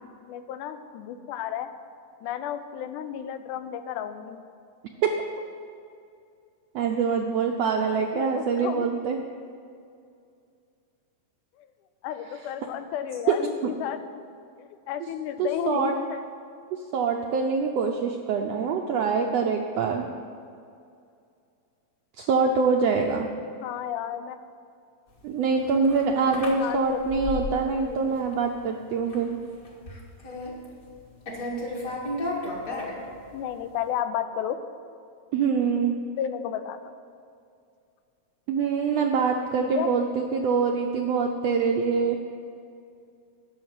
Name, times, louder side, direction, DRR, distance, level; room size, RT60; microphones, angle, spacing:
voice 1, 0.3-1.7 2.2-4.4 8.1-8.9 11.6-11.7 12.0-14.2 14.6-16.3 23.6-24.4 26.6-27.3 27.9-28.1 33.3-34.6 36.2-36.8 39.6-39.9, left 9 dB, 85° left, 10 dB, 2.2 m, -32 dB
voice 2, 6.7-9.2 13.3-13.4 15.4-15.9 16.9-20.1 22.2-23.3 25.2-29.4 35.3-35.9 38.5-42.2, right 5 dB, 75° right, 2 dB, 1.5 m, -24 dB
sound 1, 25.3-27.8 28.1-28.6 29.0-29.3 29.6-31.0 31.3-33.5, left 1 dB, 35° left, 1.7 m, -34 dB
11.0 x 6.5 x 8.7 m, 2.4 s
omnidirectional pair, 3.5 m